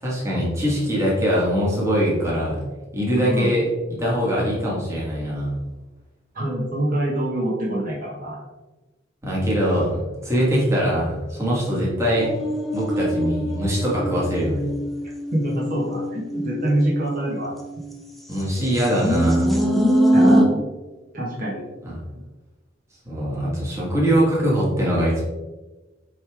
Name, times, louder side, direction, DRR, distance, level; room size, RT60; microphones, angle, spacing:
voice 1, 0.0-2.6 2.9-3.6 4.0-5.5 9.2-12.3 12.7-14.7 18.3-19.5 21.8-22.0 23.0-25.2, equal, 15° right, -5 dB, 1.7 m, -22 dB
voice 2, 3.2-3.5 6.3-8.4 15.3-17.5 20.1-20.6 21.1-21.6, right 1 dB, 45° right, -4 dB, 1.3 m, -25 dB
sound 1, 12.2-17.9 18.6-20.5, equal, ahead, 0.6 m, -23 dB
8.4 x 3.3 x 3.5 m, 1.2 s
head